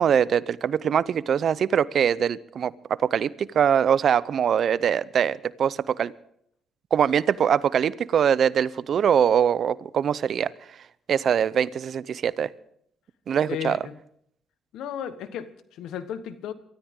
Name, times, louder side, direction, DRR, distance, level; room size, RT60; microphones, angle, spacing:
voice 1, 0.0-2.7 3.0-6.1 6.9-10.5 11.1-12.5 13.3-13.8, right 8 dB, 60° right, 0.6 m, -22 dB
voice 2, 13.5-13.9 14.7-16.5, left 9 dB, 85° left, 1.2 m, -34 dB
23.0 x 13.5 x 3.7 m
cardioid pair, 90°, 0 cm